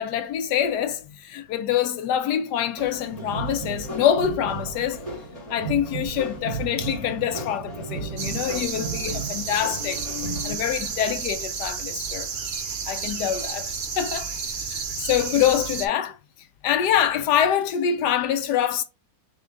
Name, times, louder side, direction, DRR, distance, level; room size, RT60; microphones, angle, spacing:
voice 1, 0.0-5.0 5.5-10.0 10.4-12.3 12.9-14.3 14.7-16.2 16.6-18.8, left 9 dB, 70° left, 1.2 m, -25 dB
sound 1, 2.8-10.5, right 3 dB, 40° left, 2.3 m, -34 dB
sound 2, 8.2-15.9, right 5 dB, 85° right, 0.4 m, -31 dB
3.7 x 3.5 x 3.7 m
omnidirectional pair, 2.0 m